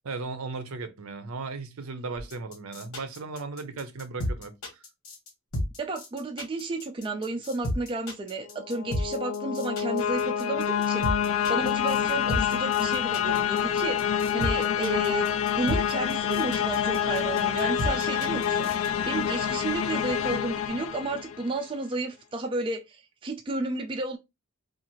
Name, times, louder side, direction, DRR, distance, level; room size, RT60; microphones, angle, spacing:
voice 1, 0.0-4.5, right 3 dB, 75° right, 0.6 m, -36 dB
sound 1, 2.2-18.9, equal, 80° left, 1.2 m, -32 dB
voice 2, 5.8-11.1 11.5-15.3 15.6-24.2, right 2 dB, 25° right, 0.3 m, -32 dB
sound 2, 8.5-21.6, left 9 dB, 65° left, 0.3 m, -27 dB
2.7 x 2.4 x 2.9 m
head